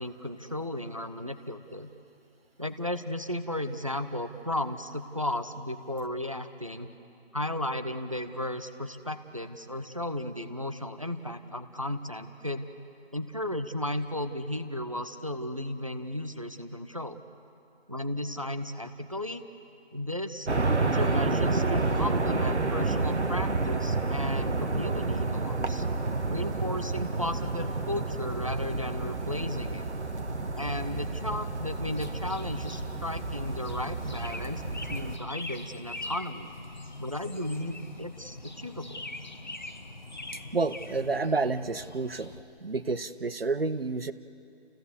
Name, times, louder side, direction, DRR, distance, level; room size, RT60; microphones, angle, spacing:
voice 1, 0.0-1.9 2.6-6.9 7.3-12.7 13.1-17.2 17.9-19.4 19.9-20.5 20.8-25.9 26.3-29.9 30.6-36.5 37.0-39.1, left 1 dB, 30° right, 9 dB, 0.7 m, -34 dB
sound 1, 20.5-35.2, right 3 dB, 90° right, 1.5 m, -30 dB
sound 2, 30.3-42.4, left 2 dB, 45° left, 1.0 m, -43 dB
voice 2, 40.5-42.3 42.6-44.1, right 3 dB, 60° right, 13 dB, 0.9 m, -29 dB
30.0 x 16.0 x 6.8 m, 2.8 s
figure-of-eight pair, 175°, 33 cm